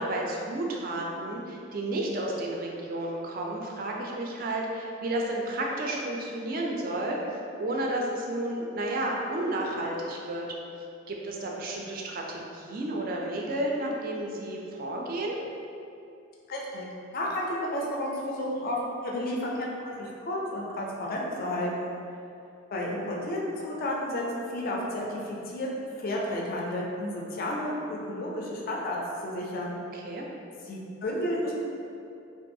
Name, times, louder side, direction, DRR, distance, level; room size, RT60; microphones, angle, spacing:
voice 1, 0.0-10.5 11.1-15.4 29.8-30.3, right 1 dB, 45° right, -1 dB, 0.3 m, -32 dB
voice 2, 16.5-16.9 17.1-21.9 22.7-24.2 24.5-29.0 29.2-29.7 30.7-31.5, left 1 dB, 45° left, -3 dB, 0.4 m, -32 dB
2.5 x 2.3 x 2.6 m, 2.6 s
head